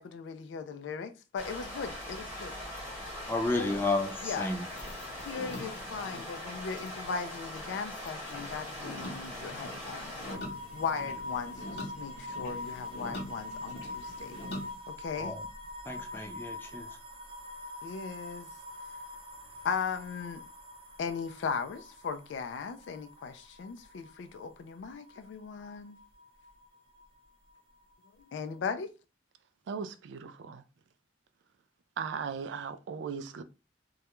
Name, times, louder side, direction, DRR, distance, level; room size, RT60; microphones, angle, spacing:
voice 1, 0.0-2.5 3.5-3.8 4.2-4.5 5.3-10.4 10.7-14.4 14.9-15.4 17.8-18.5 19.6-20.4 21.0-26.0 28.3-28.9, left 5 dB, 80° left, 0.3 m, -38 dB
sound 1, 1.4-10.4, left 1 dB, 10° right, 0.9 m, -41 dB
voice 2, 3.3-4.1 4.4-4.6 15.2-15.4 15.9-16.9, left 2 dB, 10° left, 0.5 m, -31 dB
sound 2, 4.1-14.7, left 1 dB, 65° left, 0.7 m, -45 dB
sound 3, 10.3-27.2 27.5-28.5, left 2 dB, 30° right, 0.6 m, -44 dB
voice 3, 29.7-30.6 32.0-33.4, right 6 dB, 80° right, 0.3 m, -37 dB
2.3 x 2.1 x 2.9 m
head